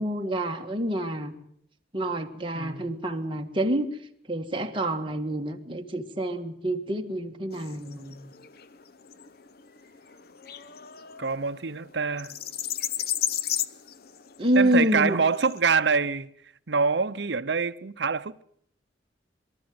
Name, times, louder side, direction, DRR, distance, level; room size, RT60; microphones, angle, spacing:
voice 1, 0.0-1.3 1.9-4.0 4.3-8.2 14.4-15.2, right 1 dB, 25° right, 1.8 m, -27 dB
voice 2, 2.4-2.8 11.2-12.4 14.6-16.3 16.7-18.4, right 5 dB, 70° right, 0.8 m, -25 dB
sound 1, 7.5-15.6, left 10 dB, 55° left, 0.8 m, -35 dB
23.5 x 13.5 x 9.5 m
head